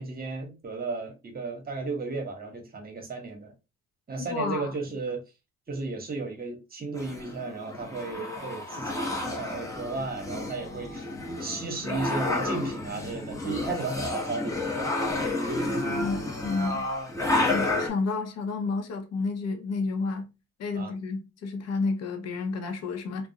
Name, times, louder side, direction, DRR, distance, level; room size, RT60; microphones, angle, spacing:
voice 1, 0.0-3.5 4.1-5.2 5.7-11.1 11.4-14.9 17.3-17.4 20.7-20.9, right 3 dB, 30° right, 0.9 m, -34 dB
voice 2, 4.3-4.7 15.9-16.9 17.2-20.3 20.6-23.3, left 4 dB, 55° left, 0.6 m, -31 dB
sound 1, 7.0-17.9, left 2 dB, 10° left, 0.6 m, -30 dB
2.3 x 2.0 x 2.6 m
cardioid pair, 90°, 30 cm